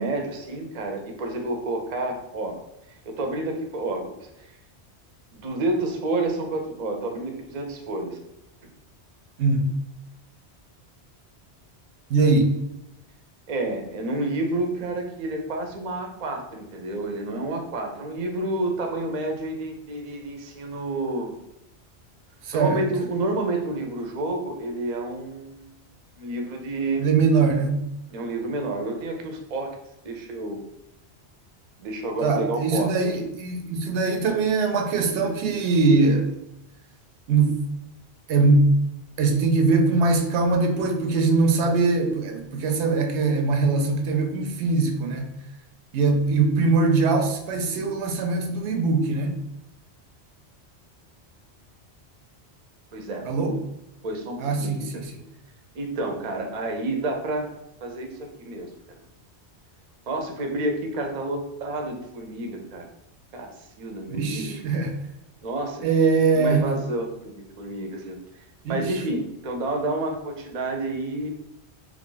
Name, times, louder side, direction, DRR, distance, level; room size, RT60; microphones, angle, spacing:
voice 1, 0.0-2.6 3.1-4.1 4.4-4.5 5.3-8.2 12.2-12.3 13.5-21.3 22.5-25.7 26.2-27.1 28.1-29.8 30.0-30.6 31.8-33.3 52.9-53.2 54.0-55.0 55.7-57.5 57.8-58.1 58.4-58.7 60.1-62.9 63.3-64.6 65.4-65.9 66.3-68.2 68.7-71.3, right 2 dB, 45° right, 3 dB, 0.5 m, -29 dB
voice 2, 12.1-12.5 22.4-22.8 27.0-27.8 32.2-36.3 37.3-37.6 38.3-38.7 39.2-45.3 45.9-49.3 53.2-53.6 54.4-55.2 64.1-65.0 65.8-66.6 68.6-68.9, right 3 dB, 85° right, 5 dB, 0.9 m, -22 dB
3.2 x 2.4 x 3.8 m, 0.84 s
omnidirectional pair, 1.1 m